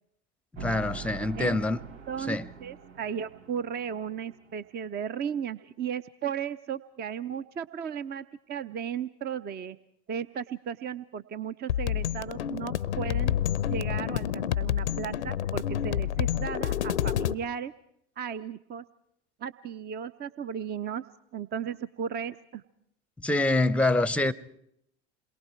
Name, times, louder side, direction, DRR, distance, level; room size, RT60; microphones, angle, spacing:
voice 1, 0.6-1.8 2.3-2.5 23.2-24.3, left 2 dB, 5° left, 0.8 m, -25 dB
sound 1, 0.6-4.6, right 6 dB, 80° right, 1.4 m, -43 dB
voice 2, 2.1-9.8 10.1-13.3 13.7-17.7 18.2-18.8 19.4-21.0 21.3-22.6, right 7 dB, 30° right, 0.7 m, -35 dB
sound 2, 11.7-17.3, left 11 dB, 85° left, 0.7 m, -28 dB
28.0 x 22.5 x 4.5 m
hypercardioid pair, 80°, 33 cm